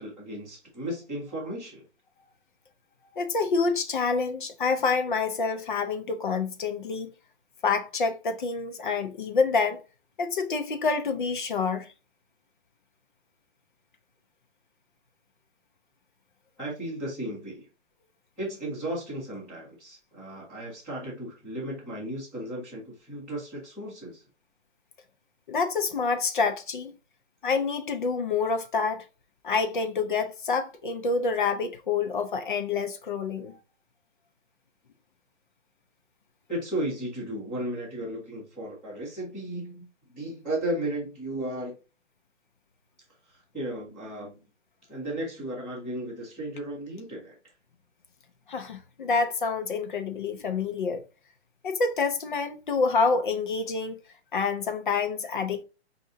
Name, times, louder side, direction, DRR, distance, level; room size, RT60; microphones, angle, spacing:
voice 1, 0.0-1.8 16.6-17.7 18.4-24.2 36.5-39.8 40.1-41.7 43.3-44.5 44.9-47.3, right 1 dB, 5° left, 1.3 m, -35 dB
voice 2, 3.1-7.1 7.6-9.8 10.2-11.9 25.5-26.9 27.4-29.0 29.4-33.6 48.5-51.0 51.6-54.0 54.3-55.6, left 4 dB, 45° left, 0.6 m, -27 dB
5.9 x 2.6 x 2.6 m
hypercardioid pair, 165°, 34 cm